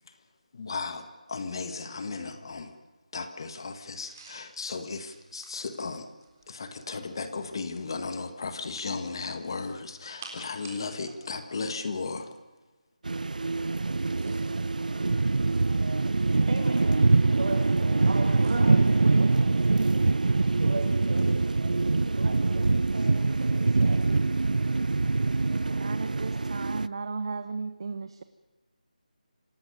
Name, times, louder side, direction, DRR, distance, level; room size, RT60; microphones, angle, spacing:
voice 1, 0.5-2.7 3.1-6.1 6.5-12.4, left 4 dB, 35° left, 9 dB, 1.7 m, -35 dB
sound 1, 4.0-6.6 9.1-11.2 11.5-11.7 13.9-14.6 15.4-16.5 18.4-18.6, right 4 dB, 20° right, 3.8 m, -51 dB
sound 2, 13.0-26.9, right 3 dB, 70° right, 0.6 m, -24 dB
voice 2, 16.5-17.0 17.3-19.3 20.1-20.3 20.6-24.1, right 2 dB, 50° right, 2 dB, 7.4 m, -38 dB
voice 3, 25.7-28.2, right 4 dB, 35° right, 12 dB, 0.9 m, -35 dB
27.0 x 18.0 x 6.8 m, 1.2 s
figure-of-eight pair, 175°, 4 cm